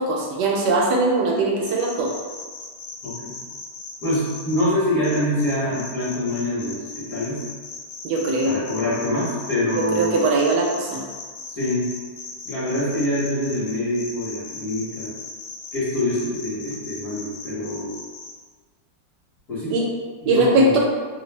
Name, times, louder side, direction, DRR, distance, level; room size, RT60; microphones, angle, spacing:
voice 1, 0.0-2.1 8.0-8.6 9.8-11.0 19.7-19.9 20.2-20.8, right 2 dB, 70° right, -1 dB, 1.0 m, -20 dB
sound 1, 1.6-4.6 5.0-18.3, left 4 dB, 85° left, 1.5 m, -37 dB
voice 2, 3.0-3.3 4.0-7.4 8.4-10.2 11.6-11.8 12.4-15.1 15.7-17.9 19.5-19.7 20.2-20.8, left 1 dB, 45° left, -14 dB, 1.4 m, -25 dB
3.3 x 2.4 x 3.1 m, 1.5 s
omnidirectional pair, 2.1 m